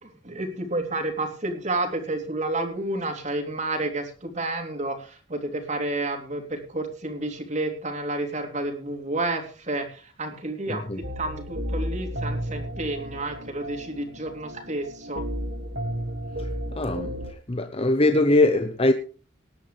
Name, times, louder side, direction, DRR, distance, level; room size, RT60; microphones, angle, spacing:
voice 1, 0.0-15.2, right 2 dB, 35° right, 3.2 m, -30 dB
voice 2, 10.7-11.0 16.4-17.2 17.5-18.9, left 2 dB, 30° left, 0.8 m, -22 dB
sound 1, 11.0-17.3, equal, 55° right, 2.1 m, -33 dB
19.0 x 11.0 x 3.4 m
head